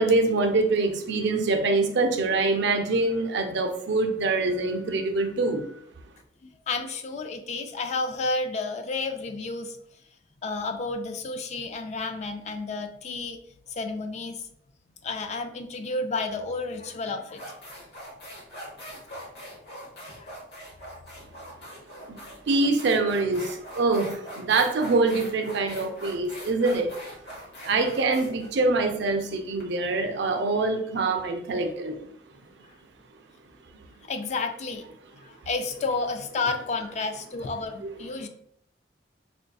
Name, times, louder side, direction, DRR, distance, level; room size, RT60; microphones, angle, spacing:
voice 1, 0.0-5.7 22.1-22.2 22.5-26.9 27.6-32.0 37.8-37.9, right 3 dB, 70° right, 5 dB, 0.5 m, -24 dB
voice 2, 6.4-9.8 10.4-13.4 13.7-14.5 15.0-17.5 20.0-20.4 24.5-24.6 34.1-34.8 35.2-38.3, left 3 dB, 40° left, 7 dB, 0.3 m, -31 dB
sound 1, 16.7-16.8 17.3-29.6, equal, 60° left, 1.0 m, -42 dB
4.3 x 2.6 x 2.3 m, 0.69 s
head